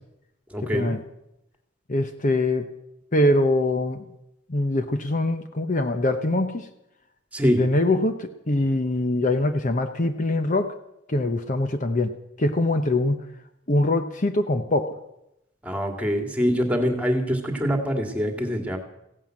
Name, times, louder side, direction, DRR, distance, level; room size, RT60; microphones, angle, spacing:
voice 1, 0.5-1.0 7.3-7.7 15.6-18.8, equal, 5° right, 4 dB, 2.1 m, -24 dB
voice 2, 1.9-2.7 3.1-4.1 4.5-6.7 7.6-10.7 11.1-12.1 12.4-13.2 13.7-14.9, left 2 dB, 45° left, 8 dB, 0.9 m, -23 dB
16.0 x 11.0 x 7.5 m, 0.85 s
head